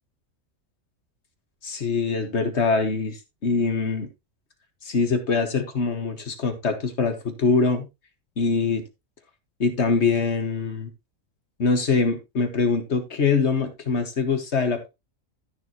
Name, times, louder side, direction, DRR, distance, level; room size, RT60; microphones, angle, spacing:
voice 1, 1.6-4.1 4.8-7.9 8.4-8.8 9.6-10.9 11.6-14.9, left 4 dB, 55° left, 7 dB, 1.8 m, -23 dB
12.5 x 6.9 x 3.0 m, 0.23 s
omnidirectional pair, 1.4 m